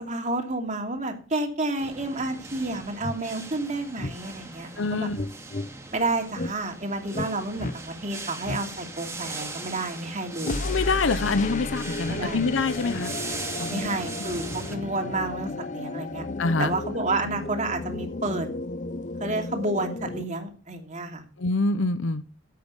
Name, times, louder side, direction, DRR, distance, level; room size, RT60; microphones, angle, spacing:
voice 1, 0.0-5.1 5.9-10.6 12.1-12.4 13.7-16.2 16.6-18.5 19.2-21.2, right 2 dB, 40° right, 2.9 m, -30 dB
sound 1, 1.8-14.8, right 3 dB, 15° right, 2.1 m, -40 dB
sound 2, 2.6-2.7 3.0-3.2 4.0-4.2 5.1-5.7 6.3-6.5 7.1-7.3 7.6-7.8 8.4-8.6 10.4-20.3, left 2 dB, 40° left, 0.7 m, -33 dB
voice 2, 4.8-5.2 10.4-13.1 13.6-13.9 16.4-16.7 21.4-22.2, left 3 dB, 85° left, 0.8 m, -25 dB
14.5 x 8.6 x 5.5 m
head